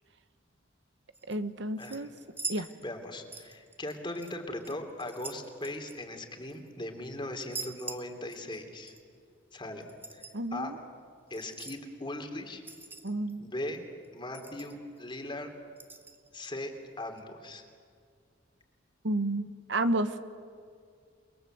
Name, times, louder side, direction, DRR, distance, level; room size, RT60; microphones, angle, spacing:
sound 1, 1.1-1.4 1.8-3.1 3.3-4.3 4.6-6.7 7.4-8.6 8.9-9.0 9.8-10.4 11.3-11.8 12.6-13.3 13.7-13.8 14.0-14.1 14.3-15.0 15.8-16.5 17.2-17.3, right 3 dB, 10° right, 1.4 m, -43 dB
voice 1, 1.3-2.1 2.5-2.7 10.3-10.8 13.0-13.5 19.0-20.2, right 1 dB, 65° right, 11 dB, 1.2 m, -31 dB
voice 2, 1.8-2.1 2.6-8.9 9.5-9.8 10.1-10.7 11.3-12.6 13.4-13.8 14.1-15.5 16.3-16.7 17.0-17.7, left 1 dB, 25° left, 5 dB, 2.9 m, -39 dB
29.0 x 22.0 x 7.9 m, 2.2 s
head